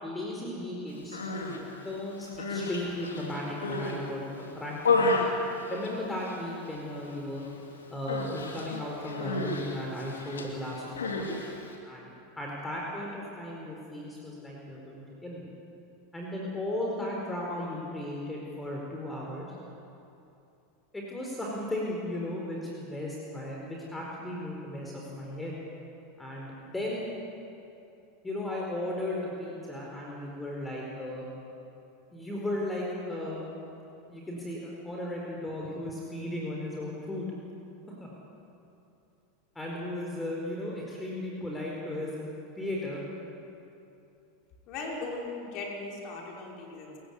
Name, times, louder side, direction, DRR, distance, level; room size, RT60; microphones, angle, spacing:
voice 1, 0.0-1.2 1.8-5.1 5.7-7.4 7.9-11.3 11.8-12.1 12.4-15.5 16.1-19.5 20.9-25.6 26.2-27.1 28.2-31.3 32.1-33.4 34.1-37.3 38.0-38.1 39.5-42.1 42.6-43.0, left 1 dB, 10° left, -2 dB, 4.5 m, -36 dB
Human voice, 1.0-1.6 2.2-4.0 4.4-6.4 6.7-7.1 7.4-7.6 8.1-11.7, left 3 dB, 85° left, 3.1 m, -32 dB
voice 2, 44.7-47.0, left 3 dB, 50° left, -1 dB, 6.0 m, -38 dB
28.0 x 15.5 x 8.6 m, 2.8 s
hypercardioid pair, 90°, 0 cm